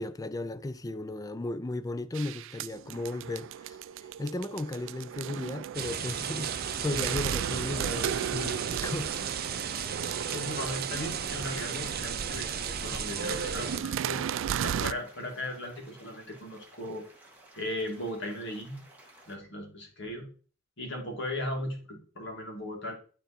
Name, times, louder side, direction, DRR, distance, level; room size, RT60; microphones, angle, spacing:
voice 1, 0.0-3.8 4.2-9.1 10.3-10.4, left 2 dB, 15° left, 0.4 m, -35 dB
sound 1, 2.1-14.9, right 9 dB, 65° right, 0.3 m, -36 dB
sound 2, 5.7-13.8, right 7 dB, 50° right, 0.7 m, -34 dB
voice 2, 10.3-14.2 14.6-17.0 17.6-18.8 19.3-20.3 20.8-22.9, left 1 dB, 60° left, 2.3 m, -37 dB
sound 3, 11.1-19.4, right 1 dB, 10° right, 1.7 m, -56 dB
11.5 x 3.9 x 4.3 m
head